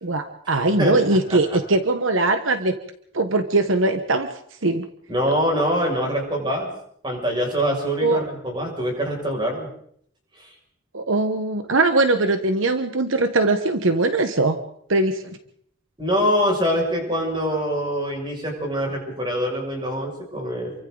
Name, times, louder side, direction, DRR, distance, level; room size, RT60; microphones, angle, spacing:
voice 1, 0.0-2.7 3.1-4.3 4.6-4.9 8.0-8.2 10.9-14.6 14.9-15.4, right 2 dB, 80° right, 8 dB, 1.3 m, -21 dB
voice 2, 0.8-1.2 5.1-6.7 7.0-9.7 16.0-20.7, equal, 25° right, 0 dB, 6.5 m, -24 dB
28.0 x 24.0 x 4.0 m, 0.67 s
head